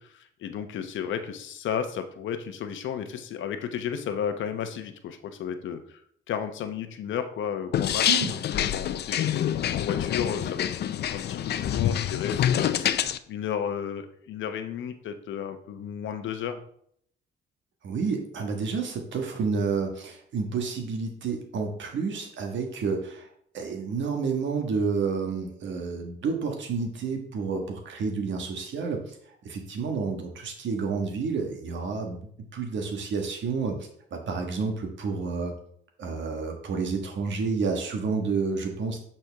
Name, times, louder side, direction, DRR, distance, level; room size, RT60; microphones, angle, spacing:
voice 1, 0.0-6.0 6.3-10.7 11.1-12.9 13.3-16.6, left 8 dB, 75° left, 8 dB, 0.9 m, -33 dB
sound 1, 7.7-13.2, left 10 dB, 55° left, 0.5 m, -26 dB
voice 2, 17.8-23.3 23.5-29.2 29.4-32.2 32.5-33.8 34.1-35.5 36.0-39.1, right 5 dB, 70° right, 3 dB, 1.5 m, -30 dB
7.8 x 4.4 x 3.5 m, 0.65 s
cardioid pair, 90°, 20 cm